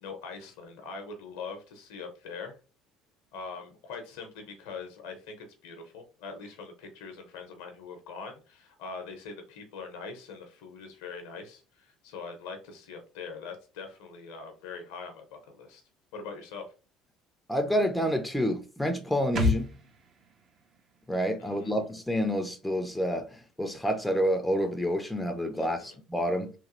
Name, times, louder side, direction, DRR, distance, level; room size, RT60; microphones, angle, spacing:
voice 1, 0.0-2.6 3.3-15.8 16.1-16.7 21.4-21.8 25.6-26.0, left 4 dB, 70° left, 0.7 m, -42 dB
voice 2, 17.5-19.7 21.1-26.5, equal, 5° left, 0.5 m, -28 dB
sound 1, 19.4-22.9 23.1-23.2, left 1 dB, 45° right, 0.6 m, -34 dB
3.0 x 2.6 x 2.4 m
figure-of-eight pair, 60°, 0 cm